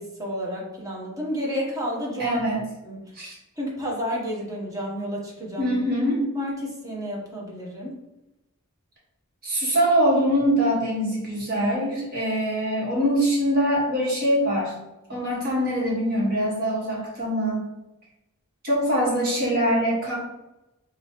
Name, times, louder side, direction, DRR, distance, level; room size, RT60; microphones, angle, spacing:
voice 1, 0.0-2.4 2.8-3.1 3.6-5.8 6.2-8.0, equal, 15° right, -3 dB, 0.9 m, -31 dB
voice 2, 2.2-2.6 3.1-3.3 5.6-6.2 9.4-14.7 15.1-17.7 18.6-20.2, equal, 45° right, -5 dB, 1.5 m, -23 dB
5.3 x 2.5 x 2.9 m, 0.95 s
head